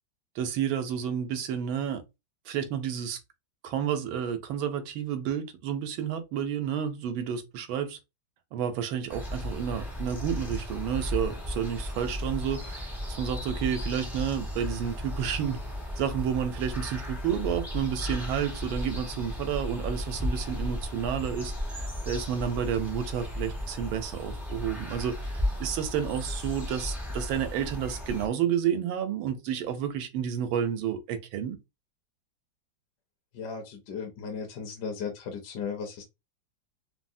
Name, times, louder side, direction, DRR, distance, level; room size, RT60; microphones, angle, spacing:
voice 1, 0.4-2.0 2.5-3.2 3.6-8.0 8.5-12.9 13.2-15.6 16.0-31.6, right 8 dB, 85° right, 1.4 m, -30 dB
sound 1, 9.1-28.3, left 1 dB, ahead, 0.4 m, -35 dB
voice 2, 33.3-36.0, left 6 dB, 70° left, 1.1 m, -36 dB
3.6 x 2.0 x 2.5 m
omnidirectional pair, 2.2 m